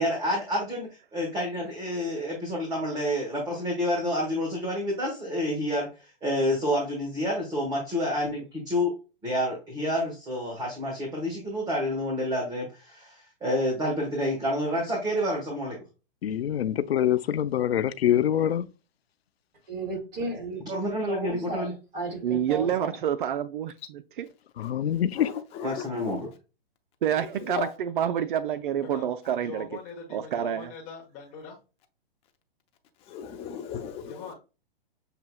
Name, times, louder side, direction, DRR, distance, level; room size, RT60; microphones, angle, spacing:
voice 1, 0.0-5.9 6.2-8.9 9.2-15.8 20.7-21.7 25.6-26.2, equal, 15° right, 1.3 m, -28 dB
voice 2, 16.2-18.7 24.6-25.3, left 10 dB, 85° left, 0.5 m, -25 dB
voice 3, 19.7-20.6 21.1-21.7 21.9-22.9, right 2 dB, 35° right, 2.3 m, -34 dB
voice 4, 22.2-23.7 27.0-29.7 30.1-30.7, right 9 dB, 60° right, 0.5 m, -27 dB
voice 5, 24.9-26.1 27.1-27.7 33.0-34.3, left 8 dB, 20° left, 0.6 m, -38 dB
voice 6, 28.8-29.1 29.4-31.6 34.1-34.3, left 5 dB, 35° left, 1.1 m, -42 dB
6.6 x 2.8 x 2.2 m
hypercardioid pair, 135°, 30 cm